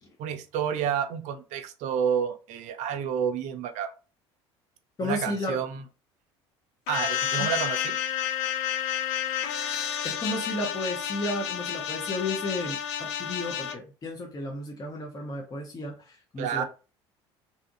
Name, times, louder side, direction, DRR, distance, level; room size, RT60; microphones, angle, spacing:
voice 1, 0.2-3.9 5.0-5.8 6.9-8.0 16.4-16.6, right 8 dB, 55° right, 8 dB, 0.5 m, -29 dB
voice 2, 5.0-5.6 7.4-7.5 10.0-16.6, left 2 dB, 25° left, 0 dB, 0.7 m, -33 dB
sound 1, 6.9-13.7, left 10 dB, 65° left, 0.4 m, -30 dB
2.7 x 2.5 x 2.5 m, 0.33 s
hypercardioid pair, 65°, 15 cm